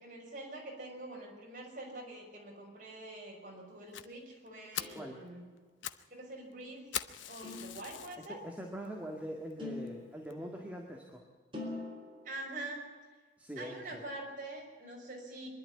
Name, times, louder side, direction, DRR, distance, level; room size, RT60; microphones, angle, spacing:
voice 1, 0.0-5.4 6.1-6.9 7.2-8.4 12.2-12.9 13.6-15.5, right 2 dB, 45° right, -1 dB, 6.0 m, -45 dB
Fire, 3.9-4.1 4.5-4.6 4.7-5.0 5.6-6.1 6.3-6.4 6.9-8.3 8.9-9.0 9.5-9.6 9.9-10.0 10.3-10.4, left 10 dB, 90° left, 0.8 m, -41 dB
sound 1, 4.8-5.7 7.4-8.3 9.6-10.6 11.5-12.5, left 2 dB, 25° right, 4.4 m, -45 dB
voice 2, 4.9-5.2 8.3-11.2 13.4-14.0, equal, 10° right, 0 dB, 1.9 m, -43 dB
24.0 x 11.5 x 9.9 m, 1.4 s
head